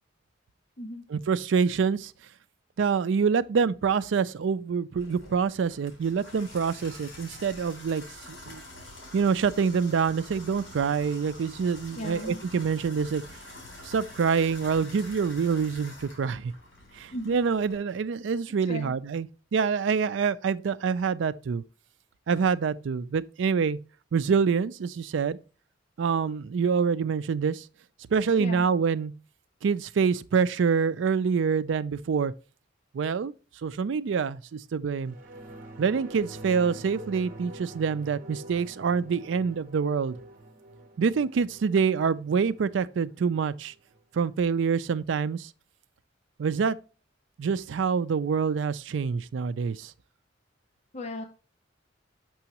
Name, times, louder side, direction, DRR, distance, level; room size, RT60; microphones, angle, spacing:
voice 1, 1.1-2.1 2.8-8.6 9.1-13.2 13.8-16.5 16.9-21.6 22.3-23.8 24.1-25.4 26.0-27.7 28.1-29.1 29.6-32.3 32.9-33.3 33.6-35.1 35.8-40.2 41.0-43.7 44.1-45.5 46.4-46.8 47.4-49.9, right 6 dB, 75° right, 0.4 m, -26 dB
Water tap faucet / Bathtub (filling or washing), 5.0-17.8, left 1 dB, 75° left, 3.4 m, -46 dB
voice 2, 11.9-12.4 17.1-17.4 18.7-18.9 28.4-28.6 50.9-51.2, left 1 dB, 40° left, 0.6 m, -36 dB
sound 1, 35.0-44.0 44.4-44.5, right 1 dB, 50° right, 0.9 m, -46 dB
6.1 x 5.8 x 2.8 m
head